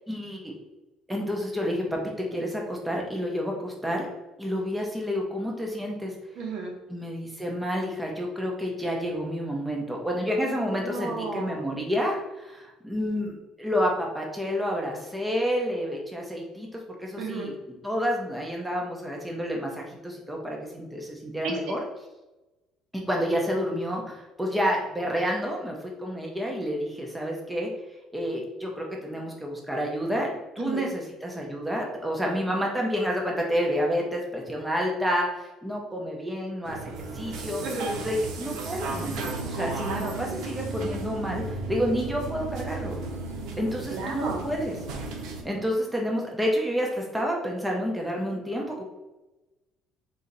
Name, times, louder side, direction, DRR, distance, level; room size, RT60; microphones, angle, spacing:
voice 1, 0.1-0.5 1.1-4.1 4.4-6.1 6.9-17.5 17.8-21.8 22.9-27.7 28.1-36.8 37.1-37.6 38.0-43.0 43.6-44.7 45.4-48.8, equal, 5° right, -1 dB, 0.7 m, -29 dB
voice 2, 6.4-6.7 10.6-11.6 17.2-17.5 21.4-21.6 30.6-30.9 37.6-38.0 39.8-40.1 43.9-44.4, right 3 dB, 65° right, 1 dB, 1.0 m, -33 dB
sound 1, 36.7-45.4, right 3 dB, 80° right, 0.7 m, -34 dB
3.8 x 2.8 x 4.1 m, 1.1 s
cardioid pair, 130°, 0 cm